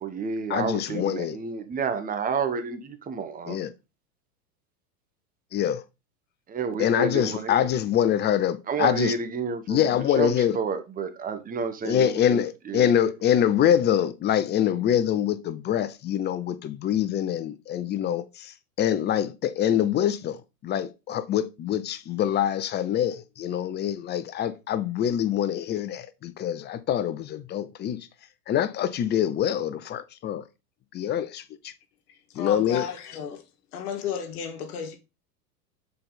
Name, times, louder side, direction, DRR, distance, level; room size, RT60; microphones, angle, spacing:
voice 1, 0.0-3.6 6.5-7.7 8.7-13.1, right 5 dB, 20° right, 0.9 m, -30 dB
voice 2, 0.5-1.3 3.5-3.7 5.5-5.8 6.8-9.1 9.7-10.5 11.8-18.5 18.8-20.4 20.6-28.0 28.5-30.4 30.9-31.7 32.4-32.8, left 10 dB, 25° left, 0.5 m, -25 dB
voice 3, 32.1-33.4 33.7-35.0, left 7 dB, 70° left, 1.4 m, -33 dB
6.8 x 4.0 x 3.8 m
hypercardioid pair, 100°, 46 cm